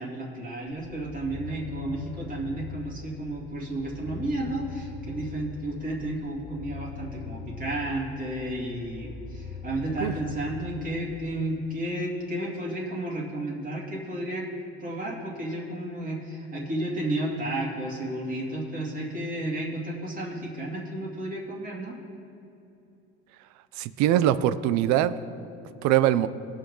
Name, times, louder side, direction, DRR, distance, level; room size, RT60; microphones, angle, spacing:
voice 1, 0.0-14.5 14.8-22.0, right 1 dB, 25° right, -5 dB, 2.5 m, -32 dB
sound 1, 0.7-11.3, left 5 dB, 80° left, 1.1 m, -41 dB
voice 2, 23.8-25.2 25.8-26.3, right 12 dB, 65° right, 15 dB, 0.6 m, -22 dB
18.5 x 6.4 x 3.8 m, 2.8 s
supercardioid pair, 105°, 30 cm